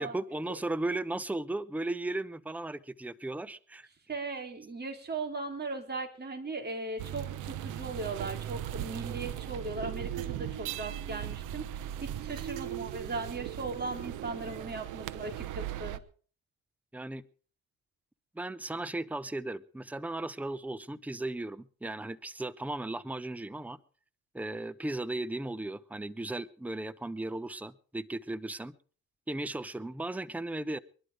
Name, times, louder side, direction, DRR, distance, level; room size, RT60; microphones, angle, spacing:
voice 1, 0.0-3.9 16.9-17.2 18.3-23.8 24.3-28.7 29.3-30.8, right 2 dB, 5° right, 14 dB, 0.8 m, -36 dB
voice 2, 4.1-16.0, right 3 dB, 35° right, 3 dB, 3.9 m, -38 dB
sound 1, 7.0-16.0, right 12 dB, 90° right, 1.0 m, -38 dB
22.5 x 11.5 x 4.9 m, 0.43 s
cardioid pair, 90°, 30 cm